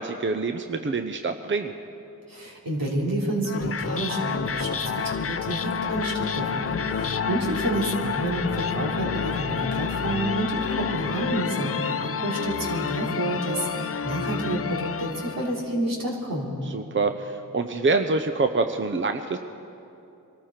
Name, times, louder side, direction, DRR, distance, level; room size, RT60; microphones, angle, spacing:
voice 1, 0.0-1.7 16.7-19.4, right 3 dB, 35° right, 7 dB, 0.8 m, -26 dB
voice 2, 2.3-16.5, right 1 dB, 70° right, -3 dB, 3.4 m, -29 dB
sound 1, 3.4-15.7, left 6 dB, 40° left, 0.6 m, -29 dB
24.0 x 13.5 x 4.5 m, 2.8 s
cardioid pair, 50°, 35 cm